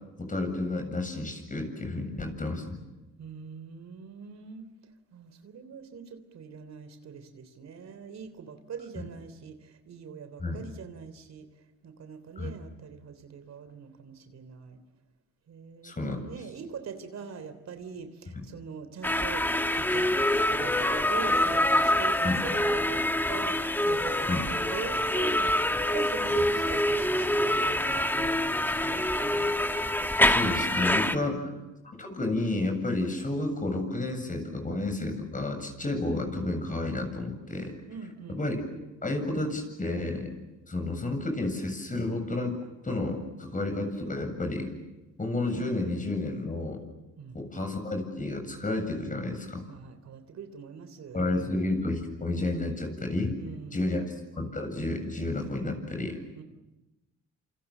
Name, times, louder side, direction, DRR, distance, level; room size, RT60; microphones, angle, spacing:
voice 1, 0.2-2.8 9.0-9.1 10.4-10.7 12.4-12.5 15.8-16.2 22.2-22.4 24.3-24.5 30.2-31.5 31.9-37.7 38.3-38.7 39.0-40.3 40.7-42.6 42.8-44.7 45.2-46.8 47.3-49.6 51.1-53.4 53.7-54.0 54.3-56.2, left 2 dB, 25° left, 5 dB, 7.7 m, -31 dB
voice 2, 3.2-4.7 5.1-11.5 11.8-14.8 15.5-29.6 31.1-31.7 37.9-38.4 47.2-47.4 49.7-51.6 53.4-54.0 56.3-56.4, right 6 dB, 60° right, 9 dB, 3.5 m, -43 dB
sound 1, 19.0-31.1, left 1 dB, 5° left, 1.3 m, -26 dB
28.0 x 27.5 x 7.4 m, 1.0 s
cardioid pair, 90°, 30 cm